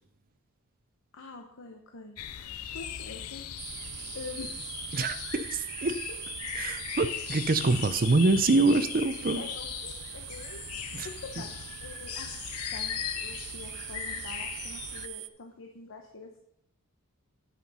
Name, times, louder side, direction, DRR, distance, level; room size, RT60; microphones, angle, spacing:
voice 1, 1.1-2.2 2.7-3.5 4.1-4.6 9.4-10.6 11.0-16.4, left 3 dB, 60° left, 4 dB, 0.9 m, -45 dB
sound 1, 2.2-15.1, left 10 dB, 75° left, 0.5 m, -38 dB
sound 2, 3.6-15.3, right 17 dB, 85° right, 0.5 m, -42 dB
voice 2, 4.9-6.0 6.5-9.4 10.9-11.1, right 3 dB, 40° right, 11 dB, 0.6 m, -25 dB
9.7 x 5.9 x 5.5 m, 0.74 s
head